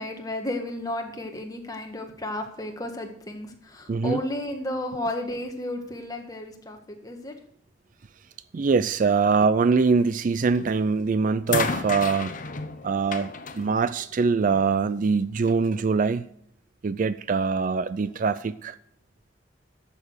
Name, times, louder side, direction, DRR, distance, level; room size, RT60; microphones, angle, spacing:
voice 1, 0.0-7.3, left 1 dB, 20° left, 1.6 m, -33 dB
voice 2, 3.9-4.2 8.5-12.3 12.8-16.3 16.8-18.7, right 4 dB, 45° right, 0.4 m, -23 dB
sound 1, 10.5-10.9 11.5-14.7 15.8-15.9, left 4 dB, 45° left, 0.8 m, -32 dB
12.0 x 6.9 x 6.4 m
head